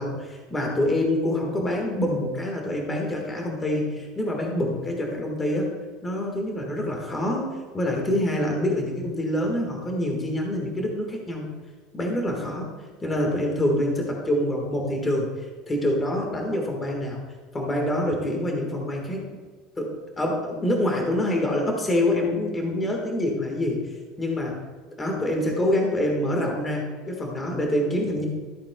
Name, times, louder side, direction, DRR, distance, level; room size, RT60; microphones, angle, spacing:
voice 1, 0.0-5.7 6.0-11.5 11.9-12.7 13.0-17.2 17.5-19.3 19.8-23.8 24.2-24.6 25.0-28.3, left 1 dB, 15° left, 1 dB, 1.5 m, -26 dB
14.0 x 8.4 x 2.3 m, 1.5 s
cardioid pair, 170°, 0 cm